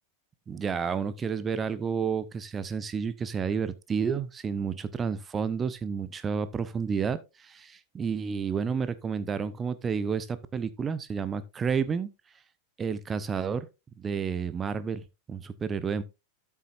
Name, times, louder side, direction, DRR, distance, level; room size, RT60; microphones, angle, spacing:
voice 1, 0.5-12.1 12.8-13.7 14.0-16.0, right 6 dB, 20° right, 0.8 m, -30 dB
12.5 x 7.2 x 2.5 m
figure-of-eight pair, 90°, 0 cm